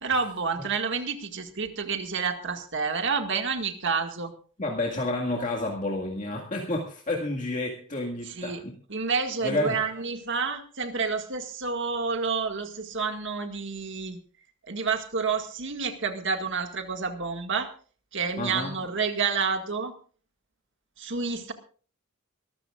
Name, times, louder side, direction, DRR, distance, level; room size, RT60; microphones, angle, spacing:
voice 1, 0.0-4.3 8.3-8.6 8.9-14.2 14.7-17.7 18.1-19.9 21.0-21.5, right 5 dB, 60° right, 5 dB, 2.0 m, -29 dB
voice 2, 4.6-8.7 9.4-9.8 18.4-18.7, left 2 dB, 35° left, -1 dB, 2.0 m, -30 dB
24.0 x 14.0 x 2.5 m, 0.41 s
head